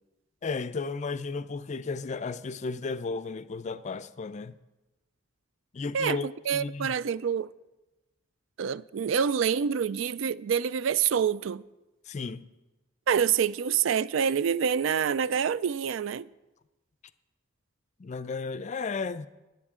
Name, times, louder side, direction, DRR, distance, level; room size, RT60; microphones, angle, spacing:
voice 1, 0.4-4.5 5.7-6.3 6.5-7.0 12.1-12.5 18.0-19.3, left 4 dB, 35° left, 0.4 m, -34 dB
voice 2, 5.9-7.5 8.6-11.6 13.1-16.3, right 7 dB, 65° right, 0.4 m, -27 dB
22.5 x 8.1 x 3.7 m
head